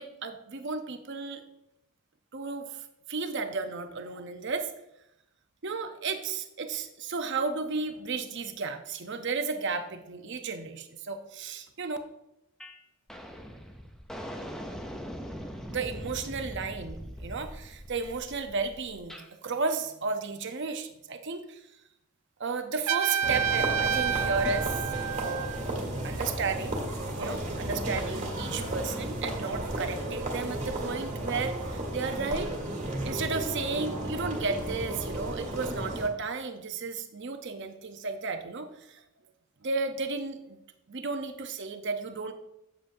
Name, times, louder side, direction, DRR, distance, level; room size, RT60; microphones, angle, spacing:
voice 1, 0.0-1.4 2.3-4.7 5.6-12.0 15.7-21.7 22.4-24.8 25.2-25.5 26.0-26.8 27.2-32.6 33.0-39.0 39.6-42.3, right 4 dB, 55° right, 7 dB, 0.8 m, -33 dB
sound 1, 12.6-12.8 13.1-19.3, equal, 5° left, 0.6 m, -41 dB
Trumpet, 22.9-25.7, right 8 dB, 90° right, 0.4 m, -29 dB
sound 2, 23.2-36.1, right 1 dB, 35° right, 1.7 m, -34 dB
8.7 x 7.7 x 2.7 m, 0.85 s
head